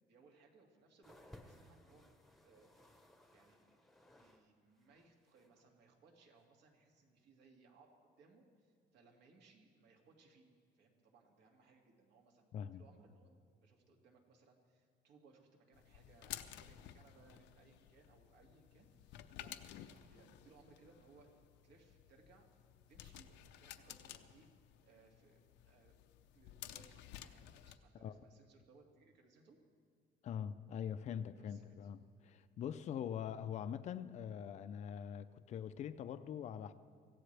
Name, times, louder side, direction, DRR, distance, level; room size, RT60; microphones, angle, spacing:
voice 1, 0.1-2.1 2.4-3.8 4.2-10.5 10.7-19.5 19.9-22.5 22.9-24.5 24.8-26.0 26.3-29.6 31.4-31.9, right 4 dB, 75° right, 1 dB, 2.3 m, -67 dB
sound 1, 1.0-4.5 4.7-5.6 6.4-6.5, left 1 dB, ahead, 0.9 m, -62 dB
sound 2, 15.7-27.8, left 12 dB, 90° left, 0.7 m, -54 dB
voice 2, 30.2-36.7, left 8 dB, 40° left, 11 dB, 0.5 m, -43 dB
24.5 x 15.5 x 3.4 m, 2.1 s
cardioid pair, 165°, 18 cm